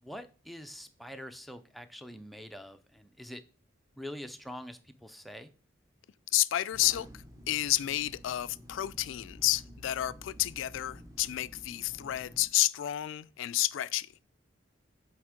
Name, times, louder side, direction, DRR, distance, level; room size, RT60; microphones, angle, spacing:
voice 1, 0.0-3.4 4.0-5.5, equal, ahead, 0.4 m, -45 dB
voice 2, 6.3-14.1, left 15 dB, 70° left, 0.3 m, -30 dB
sound 1, 6.7-12.5, equal, 15° right, 0.9 m, -51 dB
8.0 x 3.5 x 5.0 m
head